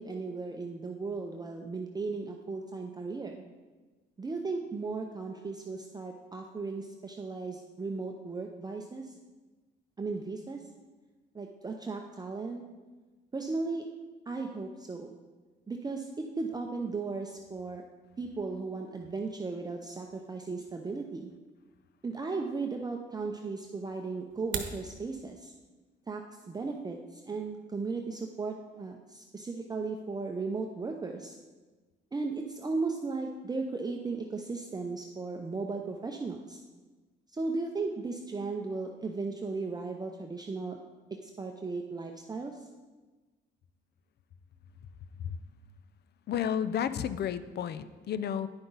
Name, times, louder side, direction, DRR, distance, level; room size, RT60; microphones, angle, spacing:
voice 1, 0.0-3.4 4.2-9.1 10.0-10.6 11.3-12.6 13.3-13.8 14.3-15.1 15.7-16.1 16.4-17.8 18.2-21.3 22.0-25.5 26.1-31.3 32.1-36.6 37.3-40.8 41.2-42.5, right 3 dB, 20° right, 2 dB, 0.6 m, -36 dB
sound 1, 24.3-24.8, right 7 dB, 75° right, 1.0 m, -36 dB
voice 2, 46.3-48.5, left 8 dB, 55° left, 14 dB, 0.5 m, -32 dB
9.6 x 5.8 x 3.9 m, 1.3 s
cardioid pair, 90°, 20 cm